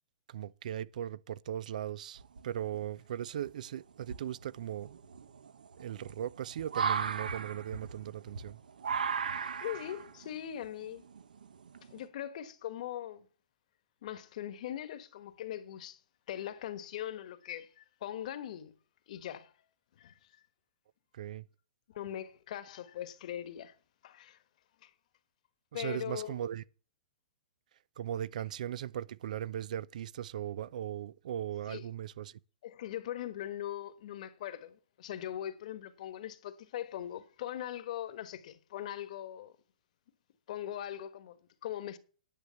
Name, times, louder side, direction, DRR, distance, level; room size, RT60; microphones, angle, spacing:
voice 1, 0.3-5.0 5.8-8.6 21.1-21.5 25.7-26.6 28.0-32.4, right 10 dB, 65° right, 0.6 m, -38 dB
sound 1, 2.2-2.8 3.4-3.5 4.0-12.0, right 6 dB, 85° right, 1.1 m, -37 dB
voice 2, 9.6-11.0 11.9-13.3 14.0-16.0 16.3-18.7 19.1-19.5 20.0-20.1 21.9-23.7 24.0-24.4 24.8-24.9 25.7-26.3 31.7-31.9 32.6-39.5 40.5-42.0, left 11 dB, 60° left, 1.4 m, -41 dB
10.0 x 6.4 x 7.0 m
hypercardioid pair, 130°, 4 cm